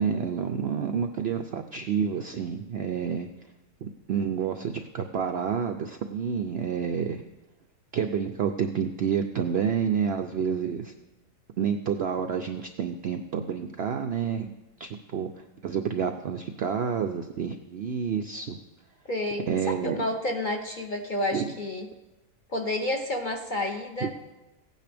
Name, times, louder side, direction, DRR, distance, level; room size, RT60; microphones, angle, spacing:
voice 1, 0.0-3.3 3.8-7.2 7.9-10.9 11.6-14.5 14.8-15.3 15.6-18.6 19.5-20.0 21.3-21.5 24.0-24.1, right 7 dB, 90° right, 6 dB, 0.5 m, -29 dB
voice 2, 19.1-21.9 22.5-24.3, left 1 dB, 45° left, 2 dB, 0.6 m, -30 dB
16.0 x 9.3 x 3.4 m, 1.0 s
omnidirectional pair, 1.7 m